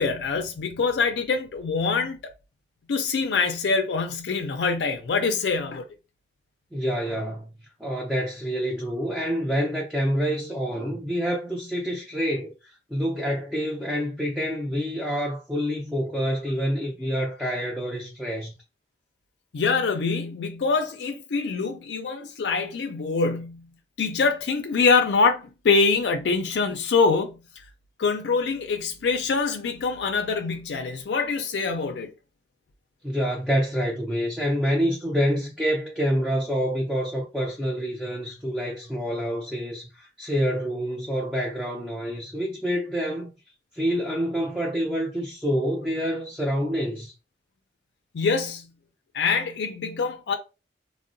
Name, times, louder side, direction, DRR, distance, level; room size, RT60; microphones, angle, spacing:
voice 1, 0.0-2.3 2.9-5.9 19.5-23.7 24.0-27.4 28.0-32.1 48.1-48.7 49.1-50.4, left 4 dB, 85° left, 0.4 m, -24 dB
voice 2, 6.7-7.5 7.8-18.5 33.0-43.3 43.7-47.1, equal, 5° right, 0.4 m, -27 dB
3.6 x 2.0 x 2.5 m
head